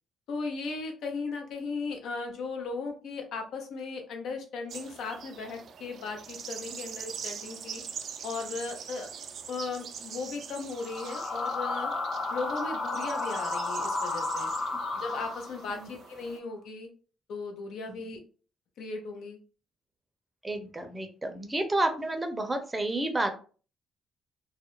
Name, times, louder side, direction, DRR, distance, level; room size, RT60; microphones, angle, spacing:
voice 1, 0.3-7.8 8.2-9.1 9.5-11.9 12.3-14.5 15.0-16.9 17.3-18.2 18.8-19.4, left 4 dB, 80° left, 4 dB, 0.6 m, -37 dB
sound 1, 4.7-16.4, right 7 dB, 65° right, 0.3 m, -43 dB
sound 2, 10.7-15.8, left 3 dB, 40° left, 1.3 m, -32 dB
voice 2, 20.4-23.3, right 2 dB, 15° right, 6 dB, 0.5 m, -30 dB
2.4 x 2.0 x 2.9 m, 0.38 s
cardioid pair, 90°, 0 cm